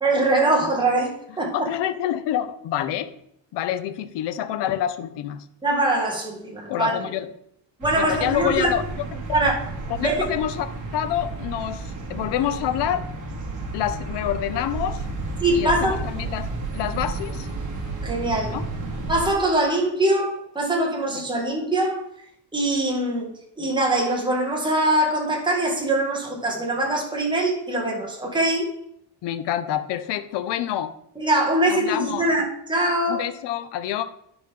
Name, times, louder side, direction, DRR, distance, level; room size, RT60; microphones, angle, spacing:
voice 1, 0.0-1.7 5.6-6.9 7.8-8.7 9.3-9.5 10.0-10.3 15.4-16.0 18.0-18.6 19.1-22.0 22.5-28.7 31.2-33.2, right 1 dB, 10° right, -2 dB, 1.7 m, -23 dB
voice 2, 1.5-3.1 3.5-5.4 6.7-7.3 7.9-8.8 9.9-10.7 10.9-13.1 13.7-15.1 15.5-17.5 18.5-18.6 29.2-31.0 31.7-32.2 33.1-34.0, left 11 dB, 65° left, 11 dB, 0.7 m, -27 dB
sound 1, 7.8-19.3, right 2 dB, 45° right, 1.8 m, -32 dB
10.5 x 5.3 x 3.7 m, 0.72 s
cardioid pair, 170°, 44 cm